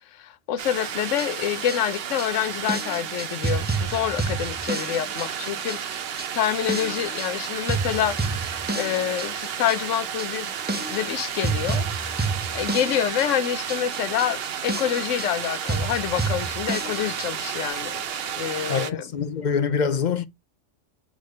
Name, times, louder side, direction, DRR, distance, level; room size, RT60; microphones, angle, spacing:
voice 1, 0.1-6.0 6.3-8.4 8.7-10.5 10.9-12.2 12.5-19.1, left 10 dB, 85° left, 1.0 m, -27 dB
sound 1, 0.6-18.9, right 8 dB, 60° right, 0.9 m, -32 dB
sound 2, 1.1-17.5, right 3 dB, 15° right, 0.4 m, -30 dB
voice 2, 18.7-20.3, left 6 dB, 50° left, 0.6 m, -25 dB
6.4 x 3.3 x 5.2 m
omnidirectional pair, 1.2 m